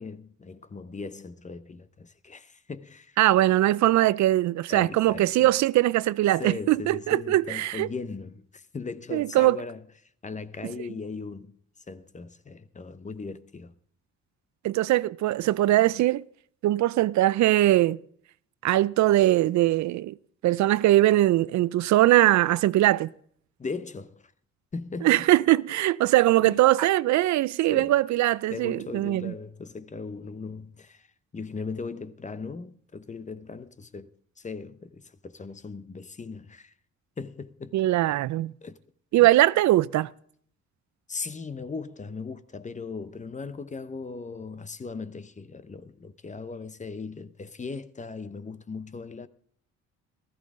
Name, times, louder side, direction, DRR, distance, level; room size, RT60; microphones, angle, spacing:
voice 1, 0.0-3.2 4.7-5.5 6.4-11.6 11.9-13.7 23.6-24.3 24.7-25.2 26.4-26.6 27.7-27.9 28.5-31.1 31.3-34.1 34.4-36.7 37.2-37.8 38.6-38.8 39.2-39.3 41.1-49.3, left 4 dB, 25° left, 0.8 m, -38 dB
voice 2, 3.2-7.9 9.1-9.6 14.6-16.2 16.6-18.0 18.6-20.1 20.4-23.1 25.0-29.3 37.7-38.5 39.1-40.1, right 15 dB, 70° right, 0.4 m, -21 dB
15.5 x 13.5 x 3.7 m
cardioid pair, 90°, 30 cm